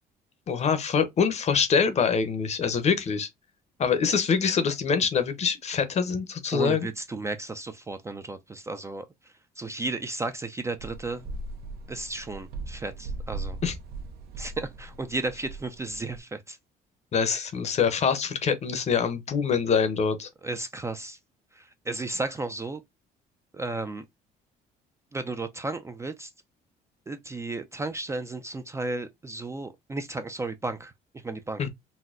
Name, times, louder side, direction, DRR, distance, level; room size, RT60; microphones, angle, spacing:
voice 1, 0.5-3.3 3.8-6.9 13.6-13.7 17.1-20.3 31.6-31.7, left 6 dB, 40° left, 0.7 m, -25 dB
voice 2, 6.5-9.0 9.6-11.3 11.9-13.6 14.4-16.6 20.4-21.2 21.5-22.8 23.5-24.0 25.1-26.3 27.1-30.9 31.2-31.6, right 2 dB, 15° right, 0.4 m, -34 dB
sound 1, 10.8-16.2, right 3 dB, 70° right, 0.7 m, -39 dB
4.0 x 2.1 x 2.4 m
cardioid pair, 110°, 17 cm